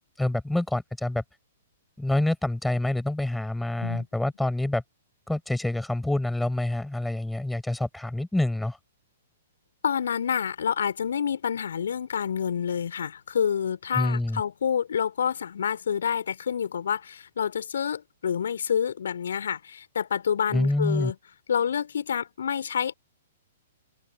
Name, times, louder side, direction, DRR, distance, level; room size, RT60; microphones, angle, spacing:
voice 1, 0.2-1.2 2.0-4.8 5.3-8.8 14.0-14.4 20.5-21.1, left 1 dB, 5° left, 5.5 m, -27 dB
voice 2, 9.8-21.2 21.5-22.9, left 8 dB, 60° left, 3.5 m, -28 dB
figure-of-eight pair, 110°, 0 cm